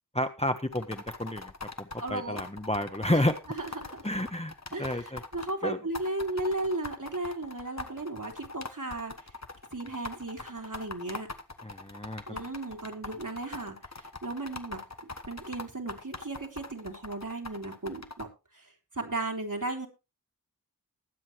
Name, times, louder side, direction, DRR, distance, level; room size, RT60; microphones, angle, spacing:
voice 1, 0.1-1.5 1.8-3.4 4.0-4.5 4.8-5.2 5.6-5.8 11.6-12.4, left 1 dB, 15° left, 7 dB, 1.2 m, -30 dB
sound 1, 0.7-5.5 5.9-18.2, left 3 dB, 45° left, 1.3 m, -42 dB
voice 2, 2.0-2.4 3.1-3.2 3.6-4.0 4.7-9.1 9.7-11.3 12.3-14.8 15.3-18.3 18.5-18.6 18.9-19.9, right 2 dB, 55° right, 2 dB, 3.4 m, -35 dB
20.5 x 8.2 x 3.1 m, 0.28 s
wide cardioid pair, 45°, 36 cm